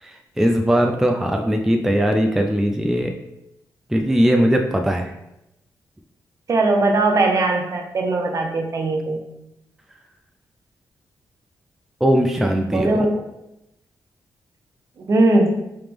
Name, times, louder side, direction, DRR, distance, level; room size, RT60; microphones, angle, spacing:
voice 1, 0.0-3.1 3.9-5.1 12.0-13.1, equal, 5° right, 3 dB, 0.3 m, -19 dB
voice 2, 6.5-9.2 12.7-13.2 15.1-15.6, right 2 dB, 45° right, 2 dB, 0.6 m, -19 dB
3.3 x 2.9 x 3.5 m, 0.87 s
cardioid pair, 95°, 7 cm